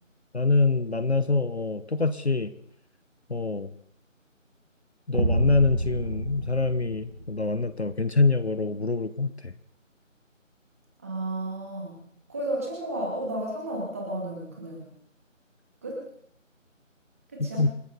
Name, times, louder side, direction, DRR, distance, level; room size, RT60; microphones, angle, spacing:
voice 1, 0.3-2.5 3.3-3.7 5.1-9.5 17.4-17.7, left 3 dB, 55° left, 13 dB, 1.1 m, -25 dB
sound 1, 5.1-7.8, right 2 dB, 40° right, 1.9 m, -28 dB
voice 2, 11.0-12.0 12.3-14.9 15.8-16.0 17.3-17.7, right 1 dB, 10° right, -2 dB, 2.5 m, -32 dB
28.0 x 12.5 x 4.1 m, 0.67 s
figure-of-eight pair, 170°, 39 cm